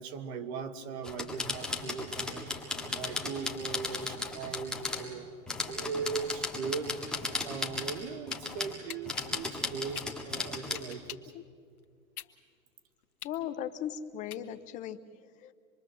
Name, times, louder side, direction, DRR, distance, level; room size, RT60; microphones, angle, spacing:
voice 1, 0.0-5.3 5.6-7.0 7.4-11.2, right 5 dB, 45° right, 10 dB, 1.7 m, -39 dB
sound 1, 1.0-5.1 5.5-8.0 8.3-8.7 9.1-10.8, left 3 dB, ahead, 1.9 m, -36 dB
sound 2, 8.3-8.4 8.9-11.4 11.8-14.8, left 11 dB, 90° left, 1.4 m, -45 dB
voice 2, 13.2-15.0 15.4-15.5, left 10 dB, 20° left, 11 dB, 0.6 m, -37 dB
26.0 x 22.0 x 7.7 m, 2.1 s
hypercardioid pair, 150°, 43 cm